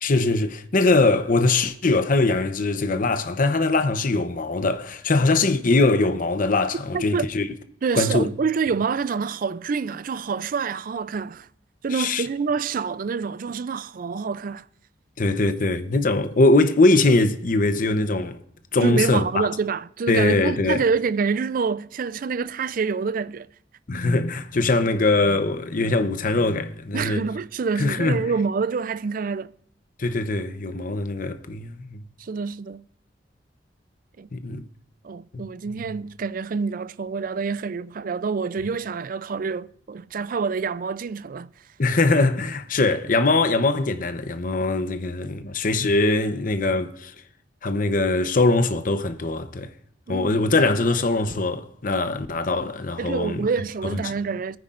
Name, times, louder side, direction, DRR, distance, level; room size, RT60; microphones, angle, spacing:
voice 1, 0.0-7.5 7.9-8.3 11.9-12.2 15.2-18.4 18.7-19.5 20.1-20.8 23.9-27.2 27.8-28.2 30.0-32.0 34.3-34.7 35.3-35.4 35.7-35.9 41.8-47.1 47.6-49.7 50.1-53.5 54.0-54.1, left 2 dB, 45° left, 0.8 m, -22 dB
voice 2, 6.9-7.3 7.8-11.5 11.8-14.7 18.8-23.5 26.9-29.5 32.2-32.8 34.2-34.3 35.0-41.5 50.1-50.4 53.0-54.6, right 5 dB, 50° right, 0.4 m, -27 dB
22.0 x 9.5 x 2.5 m
head